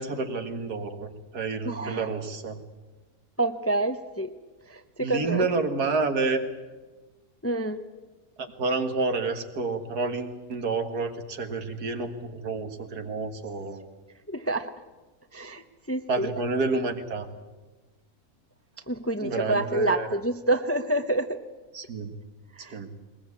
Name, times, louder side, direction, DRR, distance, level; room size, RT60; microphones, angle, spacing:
voice 1, 0.0-2.6 5.0-6.4 8.4-13.8 16.1-17.3 19.2-20.1 21.7-22.1 22.7-22.9, right 3 dB, 85° right, 7 dB, 2.2 m, -29 dB
voice 2, 1.6-2.1 3.4-4.3 4.7-5.5 7.4-7.8 14.3-14.7 15.3-16.3 18.9-21.4 22.6-22.8, right 2 dB, 15° left, 9 dB, 0.6 m, -28 dB
21.0 x 20.5 x 8.5 m, 1.2 s
omnidirectional pair, 1.6 m